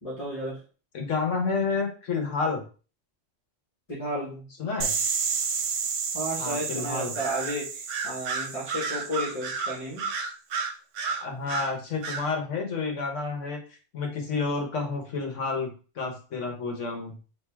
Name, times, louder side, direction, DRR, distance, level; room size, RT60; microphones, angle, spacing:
voice 1, 0.0-0.6 3.9-4.5 6.1-10.1, equal, 30° left, -5 dB, 1.3 m, -33 dB
voice 2, 0.9-2.6 4.6-5.0 6.4-7.1 11.0-15.7 15.9-17.2, left 4 dB, 80° left, 2 dB, 1.4 m, -30 dB
sound 1, 4.8-9.6, right 6 dB, 55° right, 0.6 m, -31 dB
Bird vocalization bird call bird song, 7.2-7.6 7.9-11.7 12.0-12.3, right 5 dB, 85° right, 1.0 m, -31 dB
4.5 x 2.7 x 3.4 m, 0.37 s
omnidirectional pair, 1.3 m